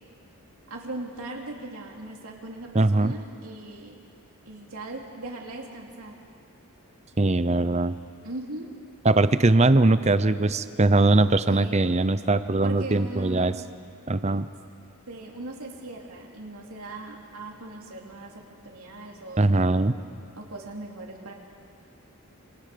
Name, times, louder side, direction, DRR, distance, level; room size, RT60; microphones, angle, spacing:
voice 1, 0.7-4.0 4.5-6.1 8.2-8.7 11.5-11.9 12.6-13.6 15.1-18.3 18.6-19.5 20.3-21.3, right 2 dB, 80° right, -1 dB, 2.9 m, -39 dB
voice 2, 2.7-3.1 7.2-7.9 9.0-13.5 14.1-14.5 19.4-19.9, right 2 dB, 30° right, 13 dB, 0.7 m, -21 dB
28.0 x 24.5 x 6.8 m, 2.4 s
head